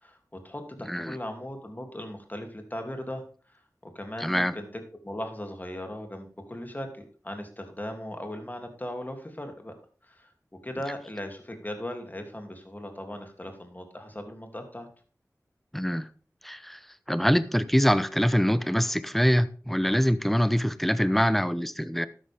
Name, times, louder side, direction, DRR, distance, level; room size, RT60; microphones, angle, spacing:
voice 1, 0.0-3.2 3.5-3.6 3.9-4.7 5.0-9.7 10.0-10.3 10.6-14.9, left 1 dB, 30° left, 4 dB, 2.9 m, -38 dB
voice 2, 4.2-4.5 15.7-16.1 16.4-16.8 17.1-22.1, equal, 5° left, 14 dB, 0.8 m, -24 dB
12.5 x 10.0 x 3.6 m, 0.41 s
wide cardioid pair, 55°, 6 cm